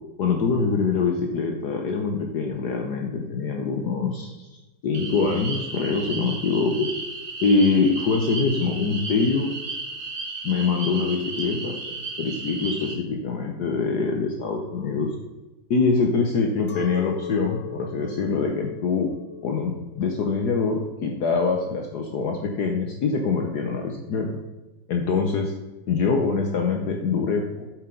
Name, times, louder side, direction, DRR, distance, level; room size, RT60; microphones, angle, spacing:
voice 1, 0.2-4.5 4.8-6.9 7.4-9.5 10.4-15.1 15.7-19.1 19.4-24.4 24.9-25.5 25.9-27.7, left 4 dB, 60° left, 2 dB, 1.4 m, -24 dB
sound 1, 4.9-13.0, right 3 dB, 35° right, 1.0 m, -34 dB
Chink clink, 16.7-22.2, left 9 dB, 90° left, 1.8 m, -41 dB
8.1 x 7.9 x 3.8 m, 1.1 s
omnidirectional pair, 2.1 m